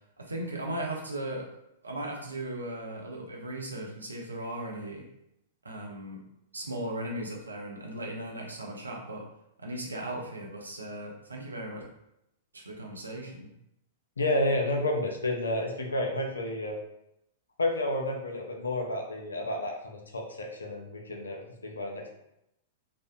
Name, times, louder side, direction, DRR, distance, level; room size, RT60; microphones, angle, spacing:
voice 1, 0.2-1.5 1.8-5.0 5.6-6.2 6.5-9.3 9.6-11.9 12.5-13.5, right 1 dB, 85° right, 0 dB, 0.5 m, -37 dB
voice 2, 14.2-16.8 17.6-22.1, left 1 dB, 85° left, 1 dB, 0.5 m, -30 dB
2.6 x 2.1 x 2.4 m, 0.81 s
figure-of-eight pair, 105°, 0 cm